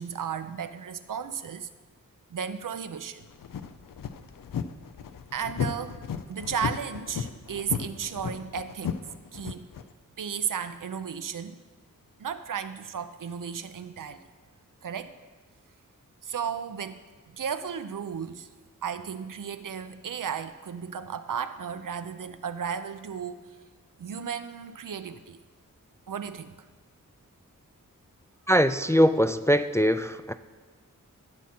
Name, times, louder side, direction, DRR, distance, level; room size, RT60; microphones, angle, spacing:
voice 1, 0.0-1.7 2.3-3.2 5.3-6.0 6.3-8.9 9.3-9.7 10.2-11.6 12.2-14.2 14.8-15.1 16.2-17.0 17.4-18.5 18.8-23.4 24.0-25.4 26.1-26.5, right 7 dB, 70° right, 11 dB, 0.6 m, -34 dB
sound 1, 3.2-9.8, left 7 dB, 80° left, 0.5 m, -34 dB
voice 2, 28.5-30.3, equal, 10° left, 11 dB, 0.3 m, -22 dB
13.0 x 6.2 x 4.4 m, 1.4 s
cardioid pair, 50°, 33 cm